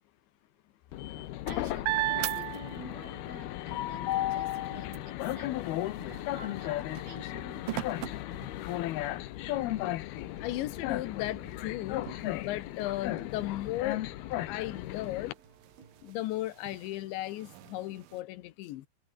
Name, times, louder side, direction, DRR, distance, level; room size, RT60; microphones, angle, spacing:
Train, 0.9-15.3, left 15 dB, 70° left, 2.8 m, -35 dB
sound 1, 0.9-3.3 3.7-9.2 9.8-9.9 10.2-18.2, right 18 dB, 80° right, 2.1 m, -40 dB
voice 1, 1.4-7.6, right 3 dB, 35° right, 8.2 m, -50 dB
sound 2, 4.2-16.2, right 6 dB, 65° right, 6.8 m, -57 dB
voice 2, 10.4-14.1 14.5-15.4 16.0-18.9, left 16 dB, 90° left, 3.5 m, -36 dB
omnidirectional pair, 5.1 m